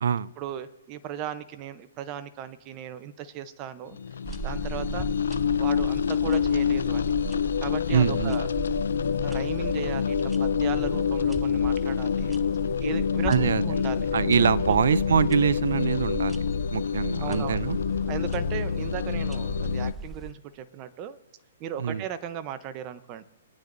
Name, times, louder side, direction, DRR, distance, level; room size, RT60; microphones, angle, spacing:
voice 1, 0.4-4.0 4.4-5.1 5.6-7.0 7.6-8.5 9.2-12.4 12.8-14.1 14.4-15.0 17.2-17.7 18.1-21.2 21.6-23.3, right 9 dB, 30° right, 11 dB, 0.8 m, -37 dB
sound 1, 3.9-19.9, left 7 dB, 80° left, 0.5 m, -27 dB
sound 2, 4.3-20.3, right 3 dB, 10° right, 0.4 m, -38 dB
voice 2, 7.9-8.4 13.3-13.7 14.1-16.4 16.7-17.8 21.8-22.0, right 7 dB, 70° right, 20 dB, 0.4 m, -24 dB
24.5 x 9.4 x 2.7 m, 1.0 s
hypercardioid pair, 145°, 0 cm